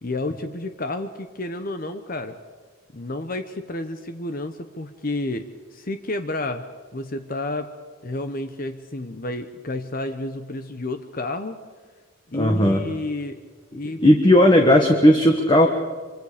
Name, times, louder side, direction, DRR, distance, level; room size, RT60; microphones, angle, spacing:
voice 1, 0.0-2.4 2.9-7.7 8.0-11.5 12.3-13.4 13.7-14.0, left 2 dB, 40° left, 8 dB, 1.0 m, -30 dB
voice 2, 12.3-12.8 14.0-15.7, left 1 dB, 20° left, 3 dB, 1.4 m, -15 dB
25.5 x 24.5 x 5.1 m, 1.5 s
head